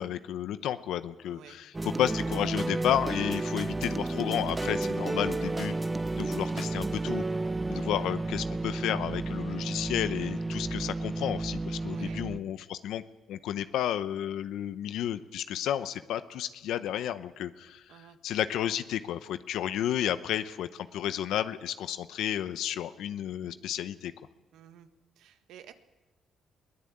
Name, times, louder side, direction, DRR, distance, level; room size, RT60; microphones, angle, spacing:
voice 1, 0.0-5.8 6.2-7.2 7.7-13.0 13.3-24.1, left 11 dB, 85° left, 12 dB, 0.8 m, -32 dB
voice 2, 1.2-1.6 7.7-7.9 11.8-12.2 17.9-18.2 24.5-24.9 25.2-25.7, right 10 dB, 85° right, 9 dB, 1.5 m, -52 dB
sound 1, 1.7-12.4, right 2 dB, 20° right, 0.7 m, -32 dB
22.0 x 17.0 x 8.7 m, 1.1 s
cardioid pair, 90°, 0 cm